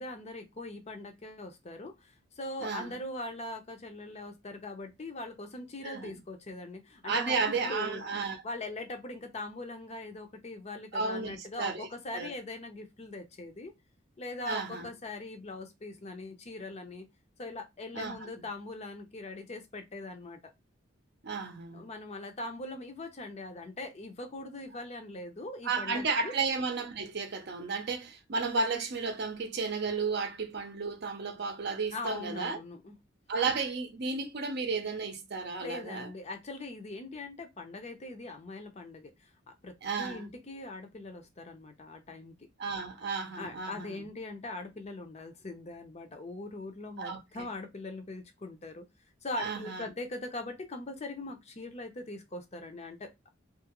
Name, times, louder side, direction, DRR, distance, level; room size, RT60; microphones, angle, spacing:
voice 1, 0.0-8.0 8.4-13.7 14.2-17.1 17.4-20.5 21.7-26.3 31.9-33.0 35.6-42.3 43.4-48.8 49.2-53.3, left 2 dB, 35° left, 0.5 m, -41 dB
voice 2, 2.6-2.9 5.8-6.2 7.0-8.4 10.9-12.3 14.5-14.9 17.9-18.2 21.2-21.9 25.6-32.6 33.3-36.1 39.8-40.3 42.6-44.0 47.0-47.5 49.3-49.9, right 4 dB, 55° right, 0.6 m, -33 dB
2.7 x 2.4 x 2.9 m
head